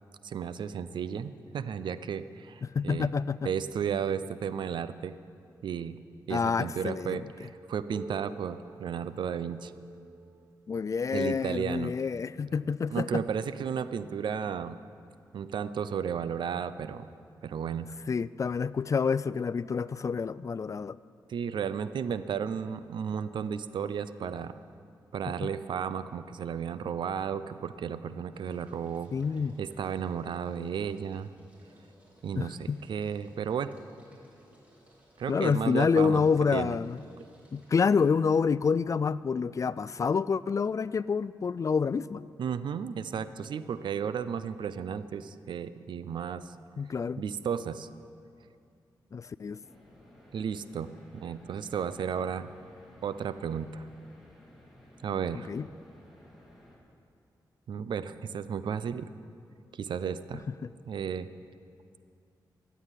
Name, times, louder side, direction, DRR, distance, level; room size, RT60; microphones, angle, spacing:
voice 1, 0.2-3.1 3.4-5.1 5.6-6.0 6.3-9.7 11.1-11.9 12.9-14.8 15.3-17.1 17.4-17.9 21.3-24.6 25.1-29.1 29.6-31.3 32.2-33.7 35.2-36.2 36.5-36.8 42.4-46.6 47.2-47.9 50.3-52.5 53.0-53.9 55.0-55.5 57.7-59.1 59.7-60.4 60.9-61.3, right 7 dB, 75° right, 14 dB, 0.5 m, -33 dB
voice 2, 2.6-3.5 6.3-7.3 10.7-13.2 18.1-21.0 25.4-25.5 29.1-29.5 32.3-32.8 35.3-37.0 37.5-42.3 46.8-47.2 49.1-49.6 55.5-55.7, left 5 dB, 40° left, 18 dB, 0.3 m, -28 dB
Piano, 7.9-13.2 14.1-14.2 14.7-14.8 15.6-15.7 16.7-16.8, right 3 dB, 35° right, 1.2 m, -50 dB
sound 1, 27.5-37.9, equal, 15° right, 4.0 m, -62 dB
sound 2, 49.6-56.8, left 1 dB, ahead, 3.8 m, -56 dB
13.5 x 8.4 x 9.2 m, 2.4 s
cardioid pair, 70°, 8 cm